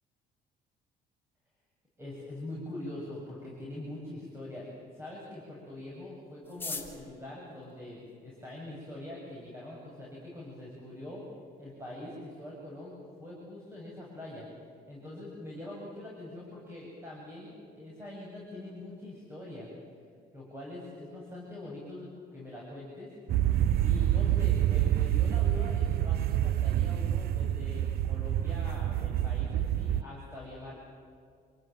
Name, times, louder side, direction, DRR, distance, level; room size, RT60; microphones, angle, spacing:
voice 1, 2.0-11.2 11.6-14.5 14.9-19.7 20.3-23.1 23.8-30.7, left 1 dB, 15° right, -4 dB, 8.0 m, -43 dB
sound 1, 6.4-8.7 9.5-9.6 9.8-9.9 10.2-10.6 11.0-11.1 11.2-11.7 12.0-12.2 12.5-12.8, left 3 dB, 10° left, 3.6 m, -42 dB
sound 2, 23.3-30.0, right 12 dB, 65° right, 0.7 m, -27 dB
28.0 x 19.0 x 9.3 m, 2.1 s
cardioid pair, 110°, 17 cm